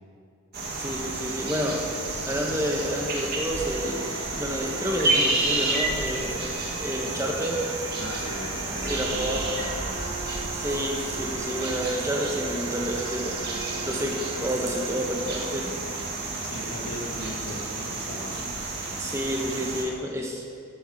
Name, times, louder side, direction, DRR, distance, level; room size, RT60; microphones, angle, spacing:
sound 1, 0.5-19.9, right 2 dB, 45° right, 1.9 m, -31 dB
voice 1, 0.7-1.8 2.3-6.4 6.8-7.6 8.7-9.4 10.5-13.4 13.9-15.8 19.0-20.4, equal, 15° right, 0 dB, 1.2 m, -30 dB
sound 2, 3.5-15.0, right 5 dB, 65° right, 1.0 m, -41 dB
voice 2, 8.0-10.2 16.4-18.3, left 1 dB, 80° left, -2 dB, 2.6 m, -38 dB
14.5 x 13.0 x 4.2 m, 2.3 s
head